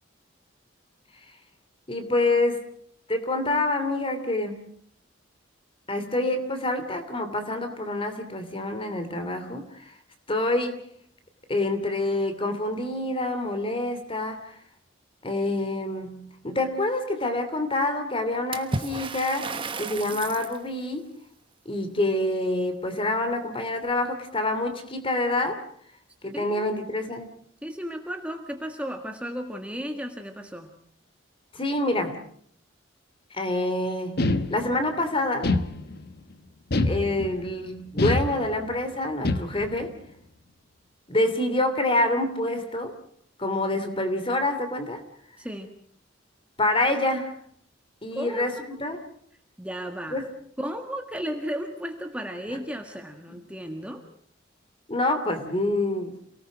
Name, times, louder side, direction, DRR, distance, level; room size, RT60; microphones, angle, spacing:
voice 1, 1.9-2.7 3.1-4.7 5.9-9.9 10.3-10.8 11.5-14.6 15.2-21.1 21.6-25.6 26.2-27.3 31.5-32.2 33.3-35.5 36.8-39.9 41.1-42.9 43.4-45.0 46.6-47.4 48.0-49.0 50.1-50.3 53.3-53.4 54.9-56.2, left 2 dB, 30° left, 8 dB, 2.8 m, -27 dB
Water / Splash splatter, 18.5-20.6, right 3 dB, 25° right, 1.2 m, -33 dB
voice 2, 26.3-26.7 27.6-30.7 45.4-45.7 48.1-48.5 49.6-50.2 50.6-54.0, equal, 5° right, 4 dB, 1.6 m, -34 dB
sound 1, 34.2-34.9 35.4-36.2 36.7-37.5 38.0-38.8 39.2-39.8, left 2 dB, 55° left, 1.3 m, -26 dB
28.5 x 18.5 x 6.2 m, 0.62 s
head